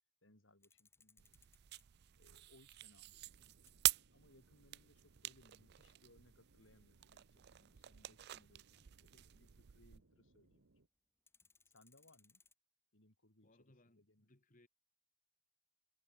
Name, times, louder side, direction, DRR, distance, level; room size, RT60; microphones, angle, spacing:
voice 1, 0.2-1.4 2.2-3.5 4.1-10.6 11.7-12.4 12.9-14.3, left 1 dB, 65° left, 3.7 m, -69 dB
sound 1, 0.6-10.2 10.5-10.6 10.9-12.5, left 4 dB, 10° left, 3.6 m, -74 dB
sound 2, 1.2-10.0, right 17 dB, 55° right, 0.4 m, -45 dB
sound 3, 3.2-10.9, right 2 dB, 80° right, 1.7 m, -73 dB
voice 2, 13.4-14.7, left 1 dB, 40° left, 2.2 m, -68 dB
head